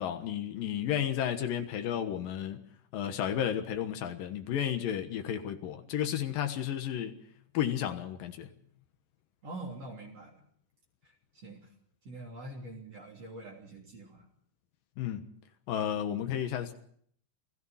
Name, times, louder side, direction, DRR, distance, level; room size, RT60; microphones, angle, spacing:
voice 1, 0.0-2.6 2.9-7.2 7.5-8.5 15.0-15.3 15.7-16.7, left 10 dB, 90° left, 3.1 m, -32 dB
voice 2, 9.4-10.4 11.0-11.7 12.0-14.3, right 2 dB, 50° right, 4.3 m, -45 dB
28.5 x 17.5 x 5.7 m
omnidirectional pair, 3.9 m